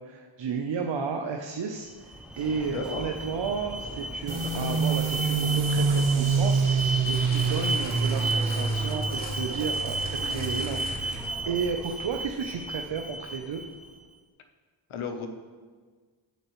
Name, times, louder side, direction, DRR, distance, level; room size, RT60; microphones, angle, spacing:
voice 1, 0.0-13.6, right 6 dB, 65° right, 3 dB, 0.8 m, -33 dB
Alarm, 1.9-13.9, right 2 dB, ahead, 0.8 m, -34 dB
voice 2, 2.7-3.1 14.9-15.3, left 6 dB, 85° left, 6 dB, 1.0 m, -33 dB
sound 1, 4.3-11.5, right 4 dB, 85° right, 1.4 m, -27 dB
sound 2, 7.0-11.5 12.2-12.3, left 1 dB, 20° left, 2.2 m, -43 dB
12.0 x 7.8 x 3.1 m, 1.5 s
cardioid pair, 70°, 48 cm